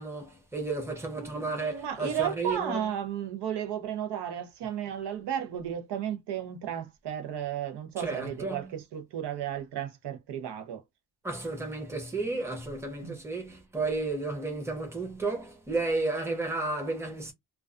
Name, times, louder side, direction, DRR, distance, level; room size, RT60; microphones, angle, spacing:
voice 1, 0.0-2.9 8.0-8.7 11.2-17.3, right 3 dB, 5° right, 0.6 m, -32 dB
voice 2, 1.2-10.8 13.0-13.2, right 9 dB, 90° right, 0.7 m, -34 dB
2.3 x 2.3 x 2.4 m
wide cardioid pair, 165°, 39 cm